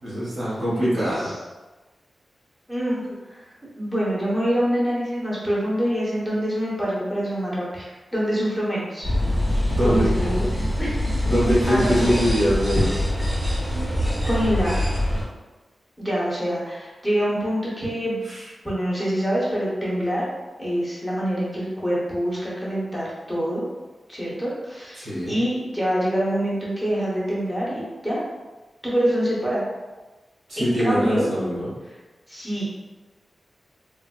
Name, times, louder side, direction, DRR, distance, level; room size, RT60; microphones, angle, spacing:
voice 1, 0.0-1.3 9.4-10.1 11.2-12.9 18.2-18.4 25.0-25.4 30.5-31.7, equal, 90° right, -9 dB, 1.4 m, -23 dB
voice 2, 2.7-3.4 3.8-9.1 9.8-10.5 10.8-10.9 11.7-12.2 14.2-14.9 16.0-18.2 18.6-20.2 20.6-23.6 24.1-28.2 28.8-29.6 30.6-31.3 32.3-32.6, equal, ahead, -7 dB, 0.8 m, -25 dB
sound 1, 9.0-15.2, left 1 dB, 20° right, 1.1 m, -24 dB
3.2 x 2.5 x 2.2 m, 1.2 s
wide cardioid pair, 140°, 0 cm